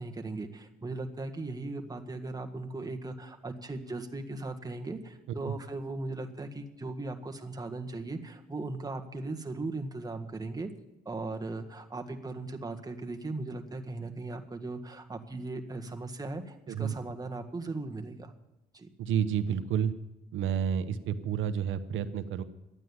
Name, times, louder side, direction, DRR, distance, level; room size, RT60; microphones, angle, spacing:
voice 1, 0.0-10.7 11.0-18.3 18.7-18.9, right 2 dB, 20° right, 4 dB, 1.7 m, -38 dB
voice 2, 19.0-19.9 20.3-22.4, right 8 dB, 80° right, 10 dB, 1.0 m, -30 dB
12.5 x 9.1 x 9.6 m, 0.92 s
cardioid pair, 90°, 20 cm